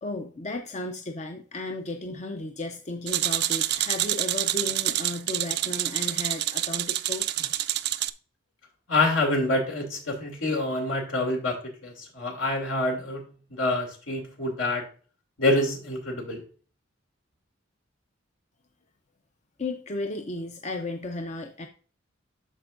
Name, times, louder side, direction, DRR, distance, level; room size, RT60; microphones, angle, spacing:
voice 1, 0.0-7.5 19.6-21.7, left 2 dB, 35° left, 4 dB, 0.6 m, -34 dB
sound 1, 3.1-8.1, right 14 dB, 60° right, 0.4 m, -27 dB
voice 2, 8.9-13.2 13.5-14.8 15.4-16.4, left 2 dB, 75° left, 0 dB, 2.7 m, -26 dB
13.0 x 4.5 x 2.5 m, 0.39 s
head